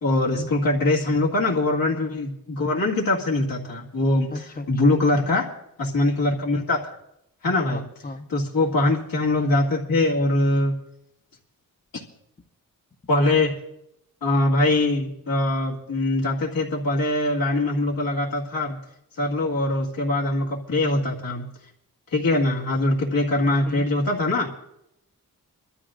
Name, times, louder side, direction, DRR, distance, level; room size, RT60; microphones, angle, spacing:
voice 1, 0.0-5.5 5.8-6.9 7.4-7.8 8.3-10.8 13.1-13.6 14.2-18.8 19.2-21.4 22.1-24.5, left 2 dB, 75° left, -3 dB, 2.2 m, -22 dB
voice 2, 4.3-4.9 7.7-8.2 23.7-23.8, left 2 dB, 25° left, 8 dB, 1.0 m, -34 dB
27.0 x 12.5 x 2.5 m, 0.80 s
wide cardioid pair, 90°, 35 cm